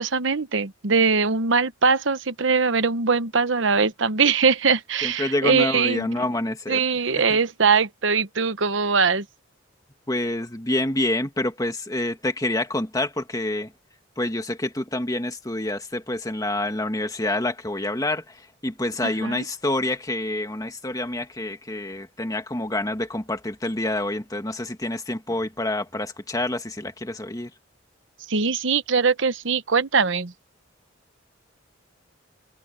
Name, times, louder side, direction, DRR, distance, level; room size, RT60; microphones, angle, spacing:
voice 1, 0.0-6.1 6.7-9.2 19.0-19.4 28.3-30.3, right 5 dB, 65° right, 1.0 m, -21 dB
voice 2, 5.0-6.8 7.1-7.4 10.1-13.7 14.2-27.5, left 1 dB, 20° left, 1.9 m, -27 dB
head